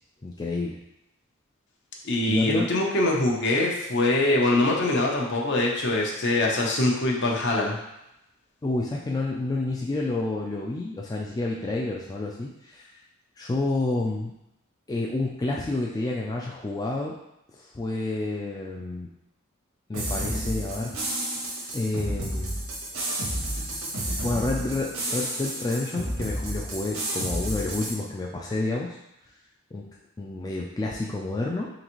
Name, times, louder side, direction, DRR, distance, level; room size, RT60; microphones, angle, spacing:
voice 1, 0.2-0.8 2.3-2.6 8.6-12.9 13.4-14.3 14.9-17.2 17.6-19.1 19.9-21.0 21.7-22.6 24.2-29.0 29.7-29.9 30.2-31.7, left 2 dB, 20° left, -3 dB, 0.3 m, -29 dB
voice 2, 2.0-7.8, left 2 dB, 55° left, -1 dB, 0.8 m, -23 dB
sound 1, 19.9-27.9, right 1 dB, 90° right, 1.1 m, -31 dB
3.9 x 3.3 x 3.0 m, 0.84 s
head